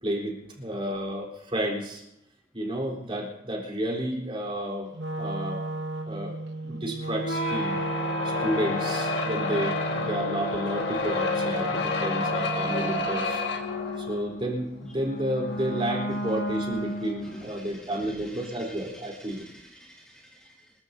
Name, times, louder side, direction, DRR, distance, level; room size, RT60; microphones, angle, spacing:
voice 1, 0.0-2.0 2.5-4.9 5.2-5.6 6.1-6.4 6.6-7.8 8.2-13.4 14.0-19.5, right 1 dB, 30° right, -1 dB, 3.9 m, -31 dB
Wind instrument woodwind instrument, 4.9-13.1, right 2 dB, 65° right, 1.1 m, -35 dB
sound 1, 7.2-17.5, left 2 dB, 65° left, 1.9 m, -30 dB
voice 2, 17.3-20.7, equal, 5° left, -3 dB, 1.7 m, -49 dB
26.0 x 14.5 x 2.8 m, 0.83 s
head